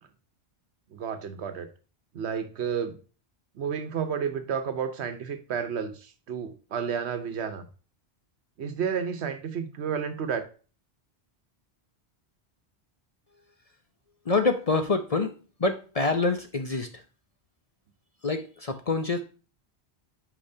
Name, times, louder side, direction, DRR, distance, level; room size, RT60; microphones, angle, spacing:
voice 1, 0.9-1.7 2.1-3.0 3.5-7.7 8.6-10.5, right 7 dB, 90° right, 9 dB, 1.1 m, -31 dB
voice 2, 14.3-15.3 15.6-16.9 18.2-19.2, left 3 dB, 40° left, 6 dB, 0.7 m, -26 dB
8.6 x 5.0 x 2.7 m, 0.37 s
omnidirectional pair, 1.1 m